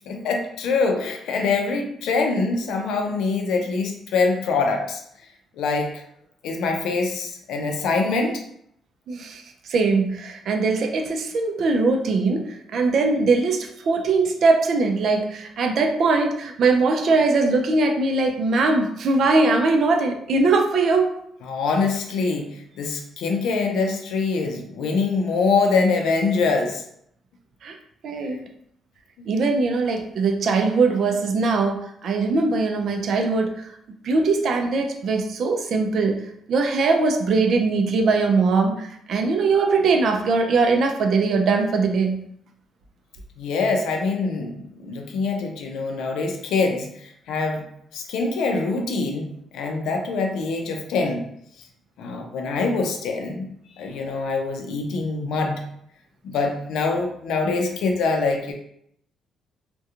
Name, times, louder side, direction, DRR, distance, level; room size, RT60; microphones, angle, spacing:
voice 1, 0.1-5.0 5.6-6.0 6.4-8.4 21.4-26.8 28.3-28.4 29.2-29.3 43.4-47.7 47.9-49.3 49.5-51.3 52.0-55.6 56.2-58.5, left 4 dB, 85° left, 3 dB, 0.4 m, -24 dB
voice 2, 9.1-9.4 9.7-21.1 27.6-27.8 28.0-28.4 29.3-33.7 34.0-36.2 36.5-42.2, right 3 dB, 65° right, 4 dB, 0.4 m, -21 dB
2.8 x 2.2 x 2.4 m, 0.72 s
cardioid pair, 90°, 0 cm